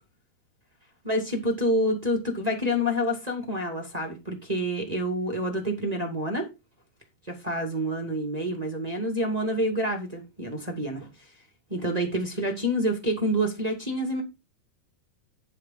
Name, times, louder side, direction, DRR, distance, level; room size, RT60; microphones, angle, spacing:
voice 1, 1.0-6.5 7.3-11.1 11.7-14.2, equal, 15° right, 1.3 m, -28 dB
10.5 x 6.4 x 4.2 m
omnidirectional pair, 5.2 m